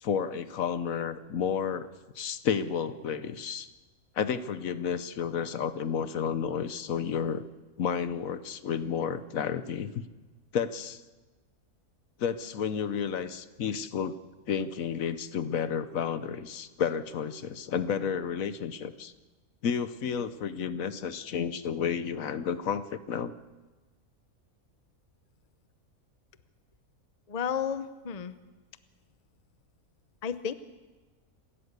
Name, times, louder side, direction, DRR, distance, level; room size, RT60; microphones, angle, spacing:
voice 1, 0.0-1.9 2.2-3.7 4.2-7.4 7.8-10.1 10.5-11.0 12.2-14.1 14.5-19.1 19.6-23.3, left 7 dB, 70° left, 13 dB, 1.3 m, -31 dB
voice 2, 27.3-28.3 30.2-30.5, left 7 dB, 35° left, 12 dB, 0.8 m, -32 dB
28.0 x 13.5 x 8.1 m, 1.2 s
omnidirectional pair, 1.5 m